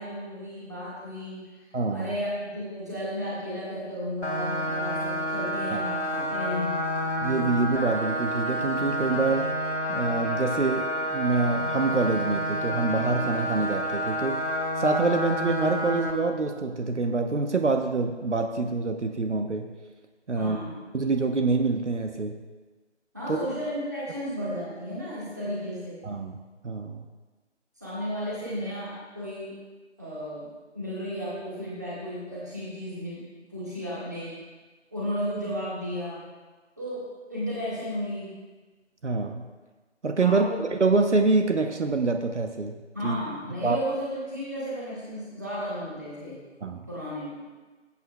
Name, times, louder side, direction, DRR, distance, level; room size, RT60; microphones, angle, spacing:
voice 1, 0.0-1.5 1.9-6.7 20.3-20.8 23.1-26.0 27.8-29.6 30.0-33.2 33.5-34.3 34.9-36.2 36.8-38.3 40.2-40.6 42.9-46.4 46.9-47.4, equal, 15° right, -9 dB, 1.6 m, -34 dB
voice 2, 1.7-2.1 5.7-5.8 7.2-9.6 9.9-14.4 14.8-19.7 20.3-20.6 20.9-22.4 23.3-23.4 26.0-26.4 26.6-27.0 39.0-39.4 40.0-42.7 43.0-43.2 43.6-43.8 46.6-46.8, right 3 dB, 75° right, 6 dB, 0.9 m, -26 dB
sound 1, 4.2-16.1, equal, 65° left, 1.6 m, -29 dB
17.5 x 8.4 x 2.3 m, 1.3 s
figure-of-eight pair, 175°, 36 cm